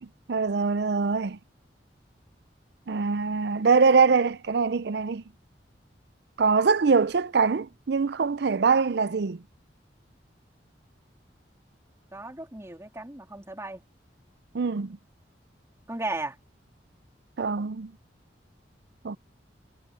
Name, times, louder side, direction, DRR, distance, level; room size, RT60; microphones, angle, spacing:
voice 1, 0.0-1.4 2.9-5.2 6.4-9.4 14.5-15.0 17.4-17.9 19.0-19.2, right 5 dB, 65° right, 0.5 m, -23 dB
voice 2, 12.1-13.8 15.9-16.4, right 2 dB, 15° right, 2.9 m, -35 dB
head